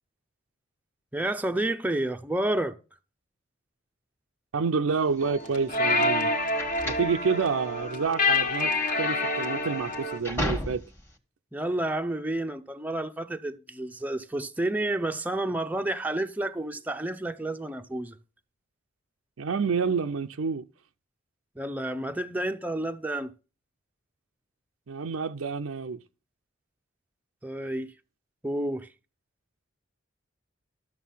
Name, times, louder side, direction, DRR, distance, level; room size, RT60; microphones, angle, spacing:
voice 1, 1.1-2.7 11.5-18.2 21.6-23.3 27.4-27.9 28.4-28.9, right 1 dB, 10° right, 0.6 m, -30 dB
voice 2, 4.5-6.3 6.8-10.8 19.4-20.6 24.9-26.0, right 5 dB, 80° right, 0.5 m, -28 dB
sound 1, 5.2-10.2, left 2 dB, 40° left, 1.3 m, -27 dB
sound 2, 5.2-11.2, equal, 10° left, 1.4 m, -35 dB
13.0 x 6.5 x 5.6 m
head